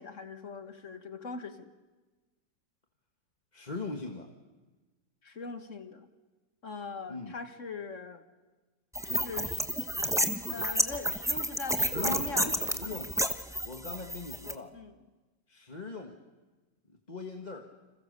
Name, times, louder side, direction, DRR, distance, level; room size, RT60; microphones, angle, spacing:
voice 1, 0.0-1.7 5.2-6.1 6.6-8.3 9.0-12.6 14.7-14.9, left 3 dB, 45° left, 8 dB, 2.0 m, -41 dB
voice 2, 3.5-4.3 7.1-7.4 11.8-13.2 13.6-14.7 15.5-16.2 17.1-17.7, left 3 dB, 25° left, 4 dB, 1.7 m, -40 dB
sound 1, 9.0-14.5, equal, ahead, 0.8 m, -31 dB
30.0 x 27.0 x 6.9 m, 1.2 s
omnidirectional pair, 1.8 m